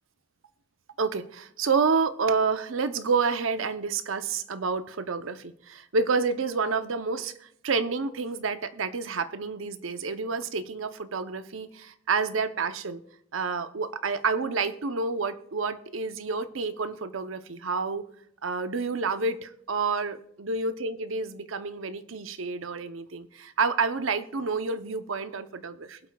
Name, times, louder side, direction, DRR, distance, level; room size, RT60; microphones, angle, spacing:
voice 1, 1.0-11.7 12.1-13.0 13.3-18.1 18.4-26.0, right 4 dB, 85° right, 0.7 m, -29 dB
21.5 x 8.0 x 2.3 m
head